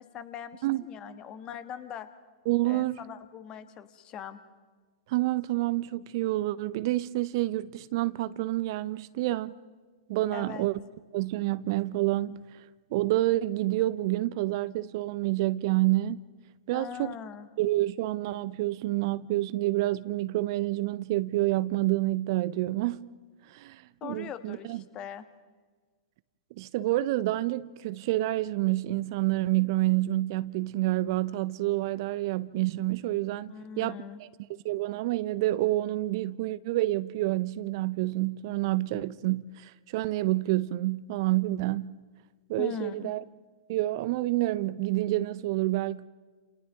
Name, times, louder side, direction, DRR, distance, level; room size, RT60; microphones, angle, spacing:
voice 1, 0.0-2.1 2.6-4.4 10.3-10.7 16.7-17.5 24.0-25.2 33.5-34.2 42.6-43.1, left 8 dB, 30° left, 1.3 m, -41 dB
voice 2, 2.5-3.0 5.1-9.6 10.1-10.8 11.1-12.4 12.9-16.2 16.7-17.2 17.6-23.0 23.5-24.8 26.6-34.3 34.6-41.9 42.5-43.2 43.7-46.1, right 17 dB, 50° right, 0.6 m, -28 dB
30.0 x 28.0 x 3.6 m
figure-of-eight pair, 105°, 3 cm